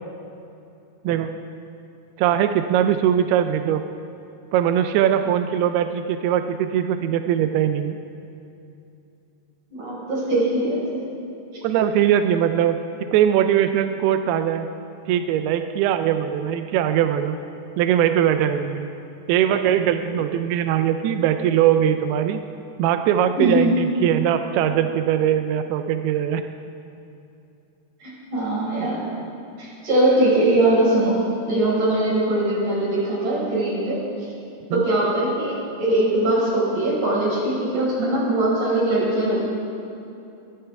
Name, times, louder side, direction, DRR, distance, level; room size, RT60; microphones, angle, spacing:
voice 1, 2.2-3.8 4.5-8.0 11.6-14.7 15.1-17.4 17.8-18.9 19.3-22.4 22.8-26.5 34.7-34.8, right 10 dB, 85° right, 8 dB, 2.3 m, -21 dB
voice 2, 9.7-11.0 23.4-23.8 28.0-29.1 29.6-31.2 31.4-34.0 34.7-39.5, right 1 dB, 45° right, -6 dB, 6.5 m, -21 dB
21.0 x 18.0 x 3.5 m, 2.7 s
omnidirectional pair, 5.2 m